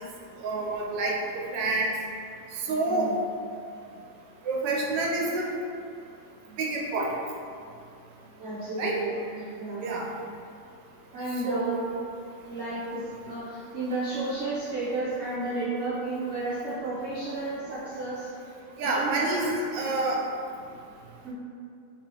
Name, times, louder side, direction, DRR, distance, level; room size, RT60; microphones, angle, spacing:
voice 1, 0.4-1.9 2.7-3.1 4.5-5.5 6.6-7.1 8.8-9.0 9.8-10.1 11.5-11.8 18.8-20.2, right 2 dB, 85° right, -2 dB, 1.2 m, -28 dB
voice 2, 2.9-3.2 8.4-9.9 11.1-11.9 12.4-18.3 18.8-19.7 21.2-21.3, right 2 dB, 55° right, -12 dB, 0.8 m, -32 dB
3.4 x 2.8 x 3.3 m, 2.4 s
omnidirectional pair, 1.8 m